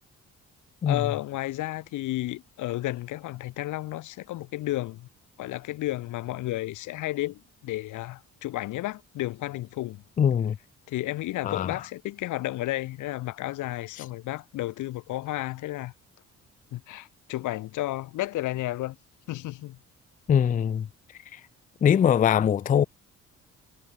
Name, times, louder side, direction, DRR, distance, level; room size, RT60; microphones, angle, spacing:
voice 1, 0.9-5.1 5.4-10.0 10.9-15.9 16.7-19.0 19.3-19.8, left 16 dB, 85° left, 1.1 m, -32 dB
voice 2, 10.2-10.6 11.4-11.7 14.0-14.1 20.3-20.9 21.3-21.4 21.8-22.8, left 8 dB, 30° left, 0.4 m, -22 dB
cardioid pair, 90°, 30 cm